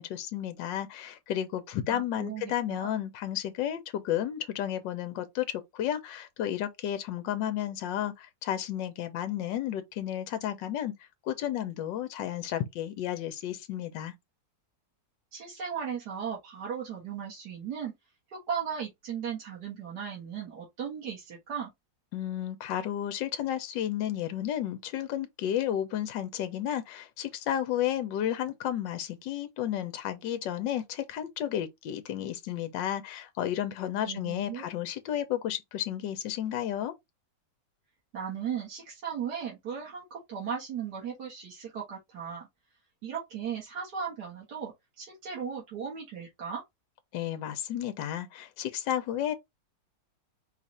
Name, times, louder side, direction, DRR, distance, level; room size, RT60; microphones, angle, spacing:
voice 1, 0.0-14.1 22.1-36.9 47.1-49.3, left 11 dB, 85° left, 1.4 m, -32 dB
voice 2, 1.9-2.9 15.3-17.9 18.3-21.7 34.1-34.6 38.1-42.5 43.0-46.6, right 7 dB, 65° right, 2.1 m, -37 dB
4.8 x 2.4 x 4.1 m
omnidirectional pair, 2.0 m